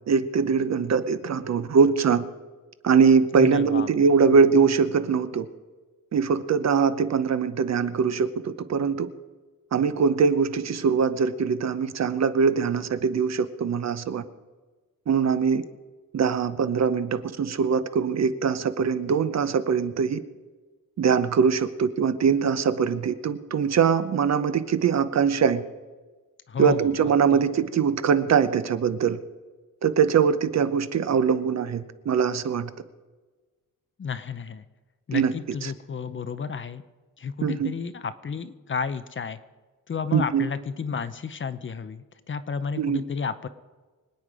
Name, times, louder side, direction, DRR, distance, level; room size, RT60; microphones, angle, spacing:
voice 1, 0.1-2.2 2.8-5.5 6.1-9.1 9.7-14.2 15.1-15.6 16.1-20.2 21.0-25.6 26.6-29.2 29.8-32.7 35.1-35.3 35.6-35.7 37.4-37.7 40.1-40.5 42.8-43.0, right 6 dB, 50° right, 13 dB, 0.8 m, -22 dB
voice 2, 3.3-4.4 26.5-27.1 34.0-34.6 35.1-36.8 37.2-39.4 39.9-43.5, left 6 dB, 35° left, 12 dB, 0.7 m, -32 dB
25.0 x 9.3 x 4.9 m, 1.3 s
wide cardioid pair, 180°, 34 cm